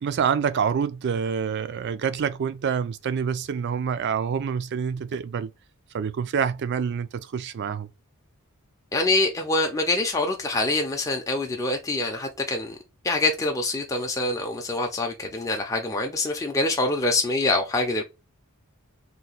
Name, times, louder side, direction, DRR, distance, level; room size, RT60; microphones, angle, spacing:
voice 1, 0.0-5.5 5.9-7.9, right 7 dB, 50° right, 0.3 m, -27 dB
voice 2, 8.9-12.8 13.0-18.0, left 2 dB, 15° left, 0.5 m, -25 dB
2.9 x 2.2 x 3.9 m
head